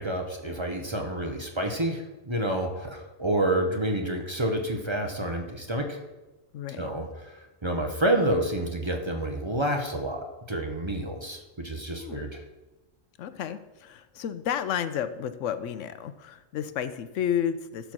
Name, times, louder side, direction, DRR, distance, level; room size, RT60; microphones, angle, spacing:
voice 1, 0.0-6.0 6.8-12.4, right 1 dB, 25° right, 3 dB, 0.9 m, -29 dB
voice 2, 6.5-6.9 12.0-12.3 13.2-17.9, left 9 dB, 85° left, 12 dB, 1.0 m, -31 dB
12.0 x 4.7 x 6.1 m, 1.1 s
omnidirectional pair, 1.3 m